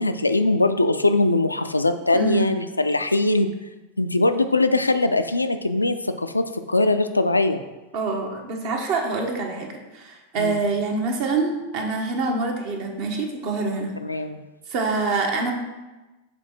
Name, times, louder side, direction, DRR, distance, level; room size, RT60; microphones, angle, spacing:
voice 1, 0.0-3.5 4.0-7.6 10.4-10.7 14.0-14.4, left 2 dB, 80° left, 8 dB, 0.3 m, -21 dB
voice 2, 2.1-2.5 7.9-13.9 14.7-15.5, right 3 dB, 45° right, 2 dB, 1.1 m, -25 dB
6.8 x 3.8 x 4.4 m, 1.1 s
figure-of-eight pair, 90°, 0 cm